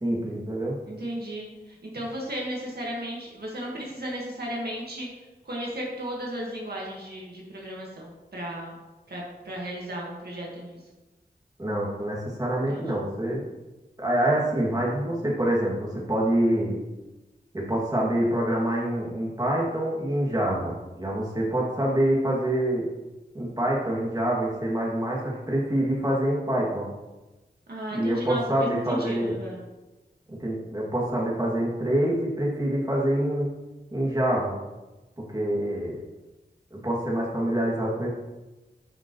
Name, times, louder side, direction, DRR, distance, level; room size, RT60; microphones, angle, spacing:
voice 1, 0.0-0.8 11.6-13.4 14.0-16.8 17.5-22.9 23.3-26.9 27.9-29.4 30.3-33.5 33.9-34.6 35.3-36.0 36.7-38.1, right 1 dB, 20° right, -4 dB, 2.5 m, -26 dB
voice 2, 0.8-5.1 5.5-8.8 9.1-10.8 12.7-13.0 27.7-29.6, equal, 65° right, -3 dB, 1.8 m, -35 dB
11.0 x 5.9 x 3.2 m, 1.1 s
wide cardioid pair, 85°, 18 cm